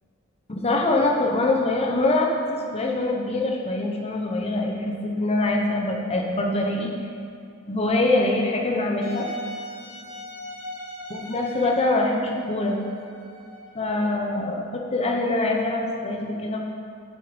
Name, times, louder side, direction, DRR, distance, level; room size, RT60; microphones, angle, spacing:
voice 1, 0.5-2.3 2.7-6.9 7.7-9.3 11.1-12.8 13.7-16.6, left 2 dB, 30° left, 0 dB, 0.9 m, -24 dB
Wind instrument woodwind instrument, 9.0-14.6, equal, 80° left, 1.8 m, -39 dB
7.7 x 7.1 x 5.1 m, 2.5 s
head